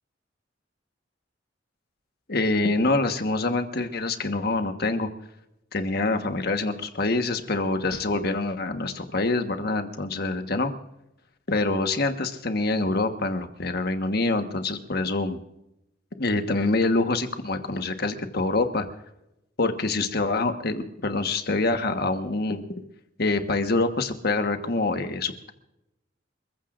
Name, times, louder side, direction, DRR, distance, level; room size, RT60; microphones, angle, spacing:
voice 1, 2.3-5.1 5.7-10.7 11.5-15.4 16.2-18.8 19.6-22.6 23.2-25.5, left 2 dB, 55° left, 7 dB, 1.3 m, -25 dB
28.0 x 15.0 x 2.5 m, 0.87 s
head